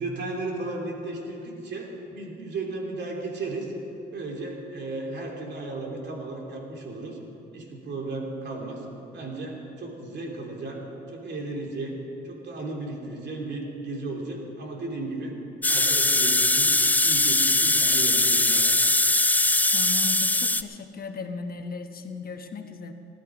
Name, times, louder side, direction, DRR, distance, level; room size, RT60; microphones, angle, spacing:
voice 1, 0.0-3.7 4.1-7.2 7.5-8.8 9.1-12.0 12.2-15.3 15.6-18.7, right 2 dB, 60° right, 0 dB, 3.1 m, -35 dB
sound 1, 15.6-20.6, left 2 dB, 10° left, 0.4 m, -21 dB
voice 2, 19.7-22.9, left 4 dB, 50° left, 5 dB, 1.2 m, -36 dB
18.5 x 12.0 x 5.0 m, 2.8 s
cardioid pair, 90°, 20 cm